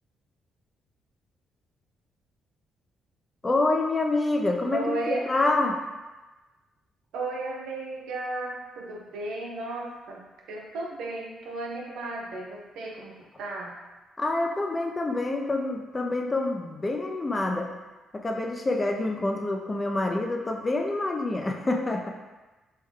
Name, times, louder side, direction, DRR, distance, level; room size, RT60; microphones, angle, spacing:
voice 1, 3.4-5.8 14.2-17.7 18.1-22.1, left 2 dB, 25° left, 2 dB, 0.4 m, -27 dB
voice 2, 4.7-5.3 7.1-10.2 10.5-13.8, right 2 dB, 85° right, -1 dB, 0.6 m, -34 dB
3.3 x 2.2 x 3.5 m, 1.2 s
cardioid pair, 90°, 0 cm